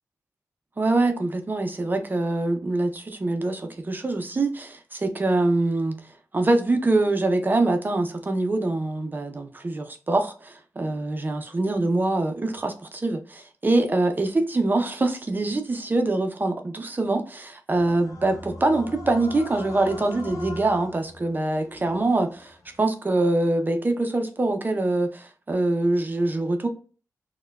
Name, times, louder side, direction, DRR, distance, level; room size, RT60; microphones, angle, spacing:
voice 1, 0.8-6.0 6.3-26.7, right 2 dB, 30° right, 0.5 m, -24 dB
sound 1, 17.7-22.9, left 2 dB, 65° left, 0.6 m, -41 dB
4.3 x 2.2 x 2.3 m
cardioid pair, 80°, 6 cm